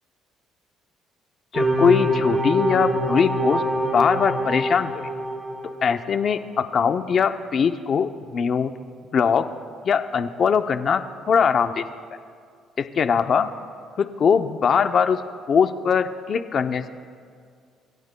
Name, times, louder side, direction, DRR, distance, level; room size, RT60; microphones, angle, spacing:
voice 1, 1.5-3.6 3.9-4.9 5.8-8.7 9.1-9.5 9.9-11.8 13.0-13.5 14.0-15.2 15.5-16.9, left 6 dB, 35° left, 9 dB, 0.5 m, -21 dB
sound 1, 1.5-6.1, right 1 dB, 15° right, 4.0 m, -24 dB
27.5 x 23.0 x 2.2 m, 2.1 s
cardioid pair, 180°, 0 cm